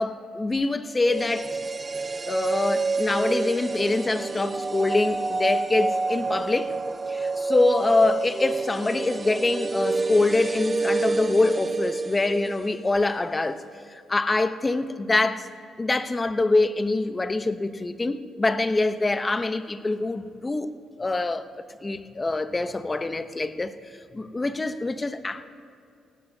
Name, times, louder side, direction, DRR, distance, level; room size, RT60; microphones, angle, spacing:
voice 1, 0.0-1.6 2.3-6.8 7.1-13.6 13.9-15.5 15.8-20.7 21.0-21.5 21.8-25.4, left 2 dB, 20° left, 0.8 m, -25 dB
sound 1, 1.0-13.1 13.4-13.5, right 3 dB, 30° right, 0.4 m, -28 dB
18.0 x 17.0 x 2.7 m
cardioid pair, 90°, 0 cm